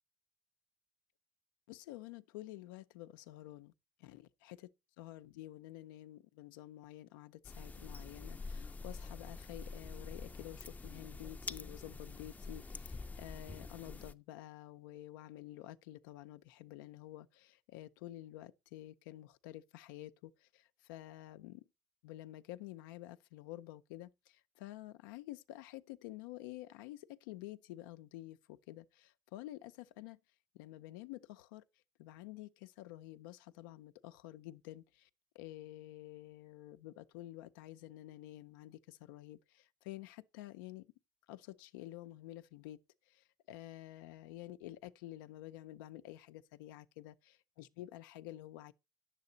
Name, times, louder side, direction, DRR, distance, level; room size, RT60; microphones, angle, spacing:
voice 1, 1.7-3.7 4.0-4.7 5.0-21.6 22.0-30.2 30.5-31.6 32.0-35.1 35.3-40.9 41.3-42.8 43.1-48.7, left 15 dB, 90° left, 0.5 m, -50 dB
sound 1, 7.4-14.1, left 3 dB, 15° left, 0.5 m, -46 dB
9.7 x 7.5 x 3.9 m
supercardioid pair, 95°, 11 cm